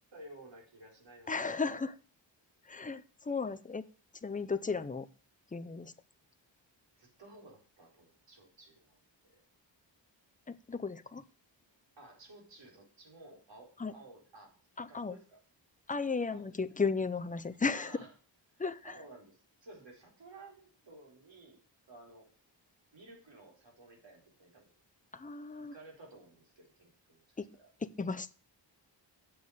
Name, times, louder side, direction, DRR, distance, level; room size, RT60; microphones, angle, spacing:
voice 1, 0.1-1.9 7.0-9.4 12.0-14.5 14.9-15.4 16.3-16.5 17.7-18.1 18.5-21.6 21.9-22.3 22.9-24.8 25.6-27.3 27.5-27.7, right 2 dB, 70° right, 0 dB, 4.3 m, -55 dB
voice 2, 1.3-2.0 2.6-3.9 4.2-5.1 5.5-5.9 10.5-11.2 13.8-13.9 14.8-15.2 15.9-18.0 18.6-19.0 25.1-25.7 27.4-27.5 27.8-28.3, left 4 dB, 20° left, 11 dB, 0.6 m, -35 dB
8.8 x 7.1 x 6.4 m, 0.40 s
wide cardioid pair, 155°, 44 cm